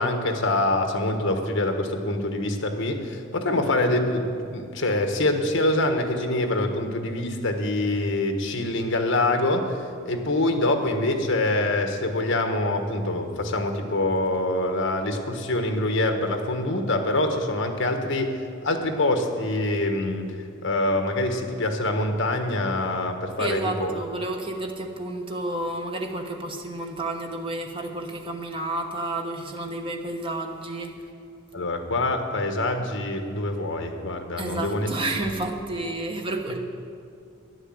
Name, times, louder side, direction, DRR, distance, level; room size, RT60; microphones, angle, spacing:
voice 1, 0.0-9.8 10.0-18.4 18.6-20.2 20.6-23.9 31.5-34.9, left 2 dB, 60° left, 5 dB, 1.4 m, -25 dB
voice 2, 23.4-30.9 34.4-36.6, right 2 dB, 25° right, 2 dB, 1.2 m, -31 dB
11.0 x 10.5 x 7.8 m, 2.3 s
head